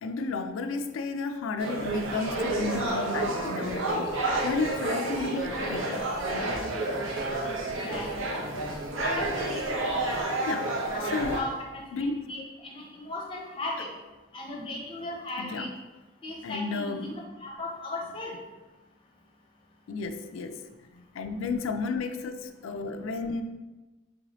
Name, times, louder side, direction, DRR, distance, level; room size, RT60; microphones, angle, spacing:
voice 1, 0.0-4.1 4.4-6.1 9.9-10.0 10.5-10.7 11.0-11.4 11.9-12.2 15.4-15.7 16.4-17.1 19.9-20.6 20.9-23.4, left 4 dB, 75° left, 8 dB, 0.3 m, -32 dB
sound 1, 1.6-11.4, right 2 dB, 70° right, 0.6 m, -30 dB
voice 2, 7.8-8.1 9.2-10.2 10.9-13.9 14.3-15.7 16.2-18.4, left 2 dB, 25° left, -1 dB, 0.6 m, -37 dB
4.6 x 2.7 x 3.0 m, 1.1 s
head